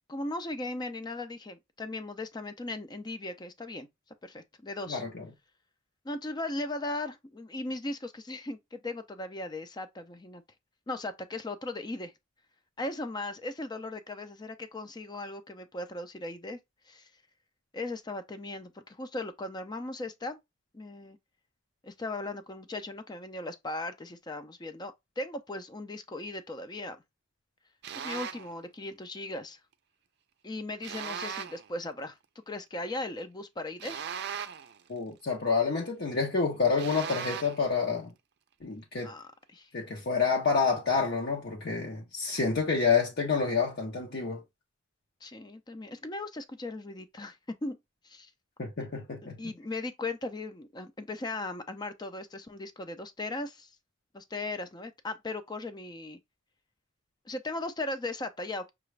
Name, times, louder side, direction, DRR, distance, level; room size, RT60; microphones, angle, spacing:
voice 1, 0.1-3.9 4.2-5.0 6.0-10.4 10.9-12.1 12.8-16.6 16.9-17.1 17.7-20.4 20.7-21.2 21.8-27.0 28.0-29.6 30.4-32.2 32.5-34.1 39.0-39.7 45.2-47.4 47.6-47.8 48.0-48.3 49.4-53.7 54.1-56.2 57.3-58.7, left 2 dB, 20° left, 0.5 m, -38 dB
voice 2, 4.9-5.3 34.9-38.1 38.6-39.1 39.7-44.4 48.6-49.4, left 5 dB, 60° left, 0.8 m, -28 dB
sound 1, 27.8-28.5 30.8-31.7 33.8-34.8 36.8-37.7, right 7 dB, 60° right, 0.4 m, -38 dB
5.9 x 2.4 x 3.2 m
head